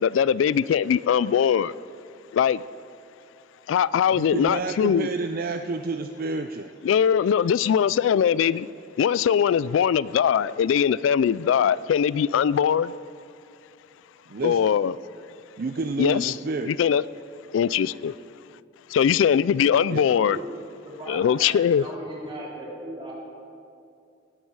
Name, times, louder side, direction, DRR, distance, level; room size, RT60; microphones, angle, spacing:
voice 1, 0.0-1.7 2.3-2.6 3.7-5.1 6.8-8.7 9.0-12.9 14.4-14.9 16.0-16.3 16.7-17.0 17.5-18.1 18.9-20.4 21.1-21.8, left 8 dB, 85° left, 20 dB, 0.3 m, -21 dB
voice 2, 4.1-6.7 14.3-14.7 15.6-16.8 19.9-20.1, right 3 dB, 50° right, 7 dB, 0.5 m, -30 dB
voice 3, 20.1-20.4 20.8-23.1, equal, 25° right, -5 dB, 3.8 m, -37 dB
18.5 x 12.0 x 4.8 m, 2.5 s
head